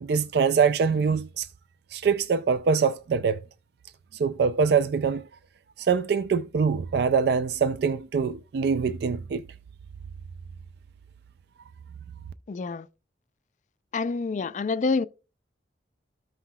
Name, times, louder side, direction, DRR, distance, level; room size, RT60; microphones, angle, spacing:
voice 1, 0.0-1.5 1.9-3.4 4.2-5.2 5.8-9.4, right 5 dB, 60° right, 0.3 m, -24 dB
voice 2, 12.5-12.9 13.9-15.1, left 4 dB, 45° left, 0.3 m, -27 dB
14.0 x 5.6 x 2.3 m
head